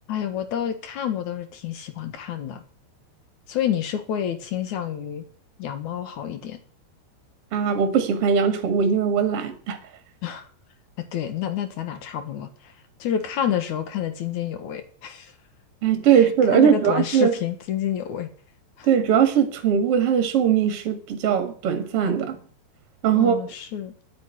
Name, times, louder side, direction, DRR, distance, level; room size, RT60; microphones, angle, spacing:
voice 1, 0.1-2.6 3.5-5.2 5.6-6.6 10.2-10.5 11.1-12.7 13.0-15.3 16.0-18.3 18.8-18.9 23.1-23.9, left 9 dB, 60° left, 2.1 m, -29 dB
voice 2, 7.5-9.8 15.8-17.3 18.9-22.4 23.0-23.4, right 8 dB, 45° right, 2.3 m, -20 dB
10.5 x 8.5 x 9.8 m
omnidirectional pair, 4.9 m